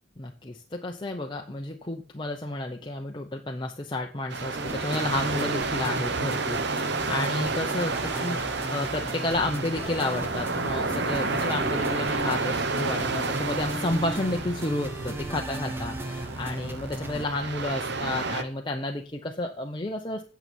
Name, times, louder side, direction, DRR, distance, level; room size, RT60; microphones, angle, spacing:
voice 1, 0.2-20.2, left 2 dB, 25° left, 2 dB, 0.7 m, -31 dB
sound 1, 4.3-18.4, right 3 dB, 55° right, 0.9 m, -30 dB
sound 2, 4.5-17.3, right 1 dB, 10° right, 0.8 m, -38 dB
8.9 x 6.9 x 6.0 m, 0.37 s
head